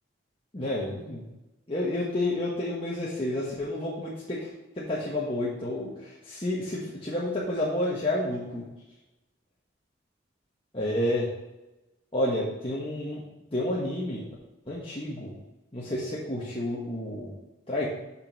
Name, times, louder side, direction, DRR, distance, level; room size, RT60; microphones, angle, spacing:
voice 1, 0.5-1.2 1.7-4.5 4.8-8.6 10.7-11.3 12.1-13.2 13.5-14.2 14.7-15.3 15.7-17.3 17.7-17.9, left 1 dB, 30° left, -6 dB, 1.4 m, -30 dB
6.7 x 5.4 x 6.1 m, 1.0 s
head